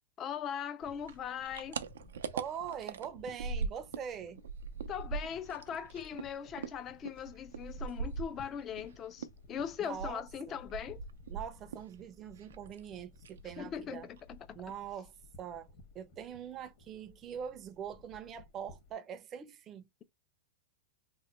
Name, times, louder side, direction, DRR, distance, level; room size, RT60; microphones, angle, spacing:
voice 1, 0.2-1.8 4.9-11.0 13.6-14.4, left 8 dB, 30° left, 0.4 m, -40 dB
sound 1, 0.8-18.9, left 3 dB, 50° left, 1.1 m, -58 dB
sound 2, 1.0-4.1 4.4-8.9 9.2-11.9 12.2-12.9 13.2-13.5 13.8-13.9 14.2-14.7, right 5 dB, 90° right, 0.4 m, -40 dB
voice 2, 2.3-4.4 9.8-10.2 11.3-14.1 14.5-15.1 15.4-15.7 15.9-19.9, right 8 dB, 30° right, 0.5 m, -43 dB
3.0 x 2.1 x 4.2 m
supercardioid pair, 135°, 0 cm